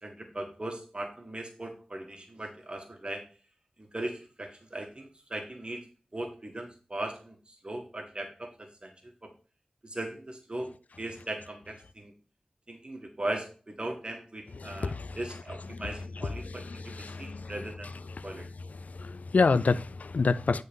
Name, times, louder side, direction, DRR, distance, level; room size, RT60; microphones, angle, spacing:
voice 1, 0.0-3.3 3.8-5.9 6.1-9.3 9.8-12.1 12.7-18.5, right 1 dB, 40° right, 1.6 m, -39 dB
voice 2, 14.6-15.2 16.4-17.5 18.2-18.3 18.9-20.6, left 4 dB, 80° left, 0.4 m, -28 dB
9.3 x 3.8 x 5.3 m
wide cardioid pair, 50°, 3 cm